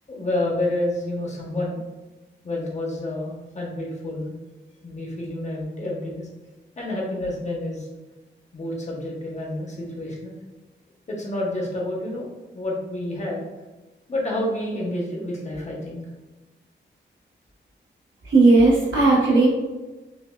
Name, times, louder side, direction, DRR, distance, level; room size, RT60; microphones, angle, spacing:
voice 1, 0.1-1.8 2.4-4.3 4.8-6.3 6.8-7.9 8.5-10.4 11.1-12.3 12.5-13.4 14.1-16.0, left 1 dB, 35° left, -3 dB, 0.8 m, -29 dB
voice 2, 18.2-19.5, right 3 dB, 85° right, -7 dB, 1.1 m, -16 dB
5.1 x 2.1 x 2.2 m, 1.1 s
wide cardioid pair, 145°, 20 cm